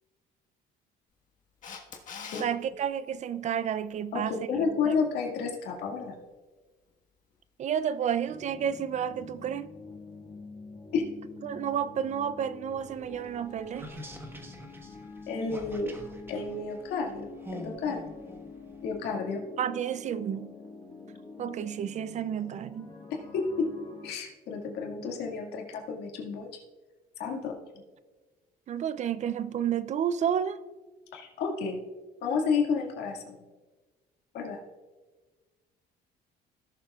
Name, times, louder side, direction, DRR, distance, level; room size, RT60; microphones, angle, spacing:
Camera, 1.6-2.5 9.2-9.3, left 6 dB, 50° left, 1.5 m, -41 dB
voice 1, 2.4-4.3 4.9-5.0 7.6-9.7 11.4-13.9 19.6-20.6 21.4-22.9 28.7-30.6, right 8 dB, 45° right, 0.4 m, -31 dB
voice 2, 4.1-6.1 10.9-11.0 15.3-16.0 16.3-18.1 18.8-19.4 23.1-23.7 24.0-26.5 27.2-27.6 31.1-31.8 32.2-33.4 34.3-34.6, left 5 dB, 80° left, 2.0 m, -31 dB
sound 1, 8.3-24.1, left 4 dB, 30° left, 1.6 m, -47 dB
sound 2, 12.8-19.1, equal, 15° right, 1.2 m, -46 dB
17.5 x 7.2 x 2.4 m
cardioid pair, 110°, 17 cm